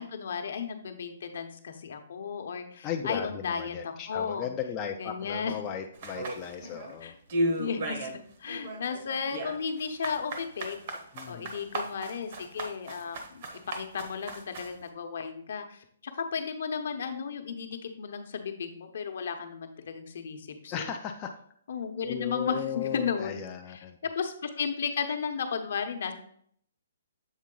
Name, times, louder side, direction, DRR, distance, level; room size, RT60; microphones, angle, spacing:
voice 1, 0.0-4.5 5.0-5.5 7.0-7.1 7.6-8.1 8.4-10.8 11.3-15.8 16.1-20.8 21.7-23.4 23.7-23.8 24.1-26.1, left 6 dB, 60° left, 6 dB, 0.8 m, -34 dB
voice 2, 2.8-7.2 11.1-11.5 20.7-21.3 22.0-24.0, left 8 dB, 20° left, 2 dB, 0.3 m, -36 dB
sound 1, 6.0-6.9 7.3-8.2 8.5-14.8, right 1 dB, 40° right, 0.9 m, -34 dB
7.2 x 3.7 x 3.8 m, 0.63 s
hypercardioid pair, 170°, 0 cm